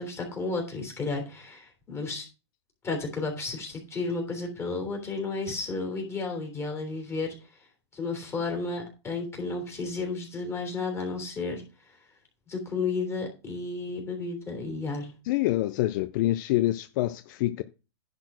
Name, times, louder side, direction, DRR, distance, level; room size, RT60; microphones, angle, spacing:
voice 1, 0.0-2.2 2.8-7.3 7.9-11.6 12.5-15.1, left 3 dB, 15° left, 3.4 m, -32 dB
voice 2, 15.2-17.6, left 16 dB, 45° left, 0.5 m, -26 dB
10.5 x 4.3 x 6.1 m
hypercardioid pair, 135°, 15 cm